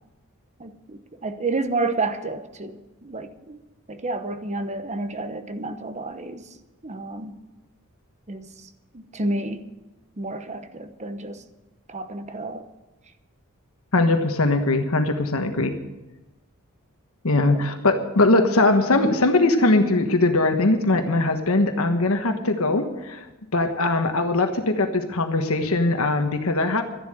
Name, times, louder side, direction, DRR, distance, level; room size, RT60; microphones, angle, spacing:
voice 1, 0.6-3.6 3.9-6.5 6.8-7.3 8.3-8.7 8.9-9.6 10.2-11.4 11.9-12.6 17.5-17.6, right 2 dB, 30° right, 9 dB, 1.1 m, -30 dB
voice 2, 13.9-15.7 17.2-23.2 23.5-26.8, left 2 dB, 70° left, 6 dB, 1.3 m, -21 dB
12.5 x 11.0 x 7.8 m, 1.1 s
head